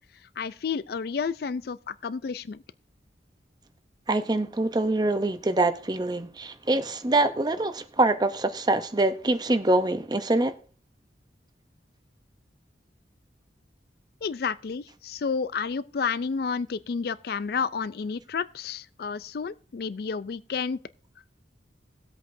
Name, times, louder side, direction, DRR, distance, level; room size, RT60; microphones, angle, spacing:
voice 1, 0.4-2.6 14.2-20.8, left 5 dB, 55° left, 0.4 m, -31 dB
voice 2, 4.1-10.5, right 2 dB, 25° right, 0.7 m, -24 dB
18.5 x 8.1 x 2.6 m
head